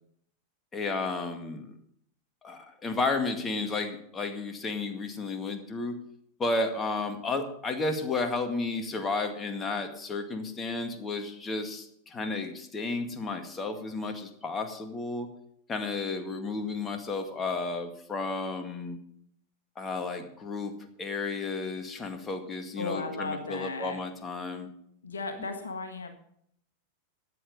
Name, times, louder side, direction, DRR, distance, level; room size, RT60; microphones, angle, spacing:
voice 1, 0.7-1.7 2.4-5.9 6.4-15.3 15.7-19.0 19.8-20.7 21.0-24.7, left 3 dB, 20° left, 6 dB, 2.0 m, -32 dB
voice 2, 22.8-24.0 25.0-26.1, left 3 dB, 70° left, 6 dB, 1.6 m, -35 dB
14.0 x 9.3 x 5.3 m, 0.68 s
figure-of-eight pair, 90°, 0 cm